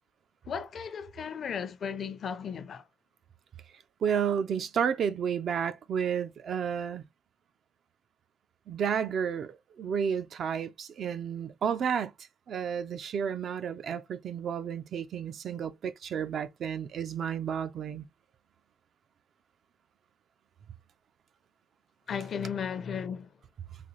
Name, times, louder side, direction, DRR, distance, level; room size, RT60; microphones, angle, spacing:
voice 1, 0.5-2.8 22.1-23.3, left 7 dB, 55° left, 0.5 m, -35 dB
voice 2, 4.0-7.0 8.7-12.1 12.5-18.1, right 7 dB, 60° right, 0.4 m, -31 dB
3.9 x 2.4 x 3.0 m
cardioid pair, 90°, 0 cm